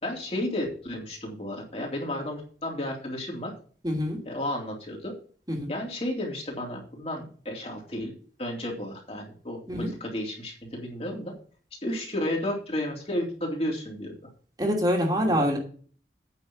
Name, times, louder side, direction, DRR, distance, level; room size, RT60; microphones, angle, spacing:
voice 1, 0.0-3.5 4.2-5.1 5.7-11.3 11.8-14.1 15.2-15.5, left 1 dB, 35° left, -1 dB, 3.4 m, -32 dB
voice 2, 3.8-4.2 5.5-5.7 9.7-9.9 14.6-15.6, equal, 25° right, 0 dB, 2.7 m, -25 dB
9.2 x 6.2 x 7.2 m, 0.43 s
head